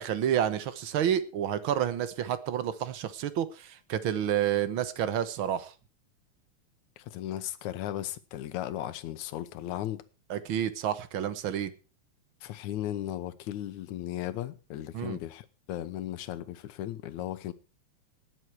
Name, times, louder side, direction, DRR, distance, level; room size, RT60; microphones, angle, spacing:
voice 1, 0.0-5.7 10.3-11.7 14.9-15.2, right 10 dB, 60° right, 1.4 m, -29 dB
voice 2, 7.0-10.0 12.4-17.5, left 13 dB, 75° left, 2.3 m, -36 dB
19.5 x 8.1 x 4.7 m
omnidirectional pair, 3.4 m